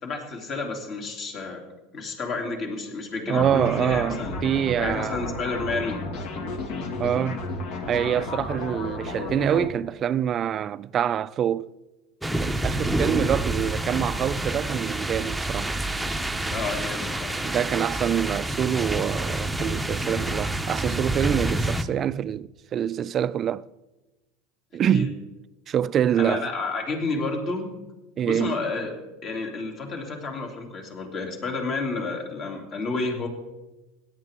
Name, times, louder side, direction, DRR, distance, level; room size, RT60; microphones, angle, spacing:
voice 1, 0.0-1.6 1.9-4.3 4.8-6.0 16.5-17.4 24.9-25.1 26.2-27.7 28.2-28.9 29.2-33.3, left 3 dB, 40° left, 3.1 m, -30 dB
voice 2, 3.3-5.2 7.0-7.4 7.9-11.7 12.4-15.7 17.4-23.6 24.7-25.1 25.7-26.5 28.2-28.6, right 9 dB, 40° right, 0.4 m, -25 dB
sound 1, 3.4-9.7, left 2 dB, 65° left, 2.1 m, -32 dB
sound 2, 12.2-21.8, right 1 dB, 5° right, 0.8 m, -28 dB
17.0 x 11.0 x 3.7 m
supercardioid pair, 100°, 0 cm